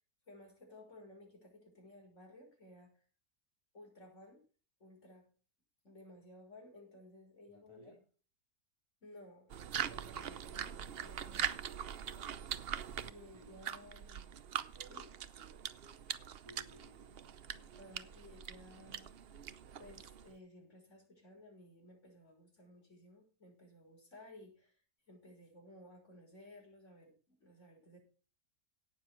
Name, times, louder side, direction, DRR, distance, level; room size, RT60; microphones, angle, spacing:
voice 1, 0.3-3.0 3.7-4.4 4.8-5.3 5.8-8.0 9.0-9.5 9.9-11.6 13.0-14.3 14.9-15.1 17.8-19.1 19.8-24.8 25.1-28.0, left 1 dB, 50° left, 6.1 m, -57 dB
voice 2, 7.5-8.0 13.3-13.6 16.4-17.2 17.5-17.9, equal, 20° right, 2.6 m, -61 dB
sound 1, 9.5-20.4, right 8 dB, 55° right, 0.7 m, -43 dB
17.5 x 7.2 x 4.6 m
omnidirectional pair, 1.6 m